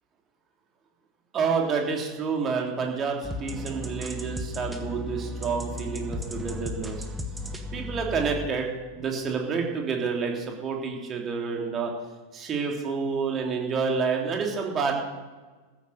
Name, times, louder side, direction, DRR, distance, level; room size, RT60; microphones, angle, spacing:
voice 1, 1.3-7.0 7.7-8.7 8.9-11.9 12.3-14.9, right 5 dB, 25° right, 1 dB, 3.1 m, -29 dB
sound 1, 3.2-8.5, left 1 dB, 10° right, 1.7 m, -35 dB
15.0 x 9.4 x 6.7 m, 1.3 s
figure-of-eight pair, 90°, 0 cm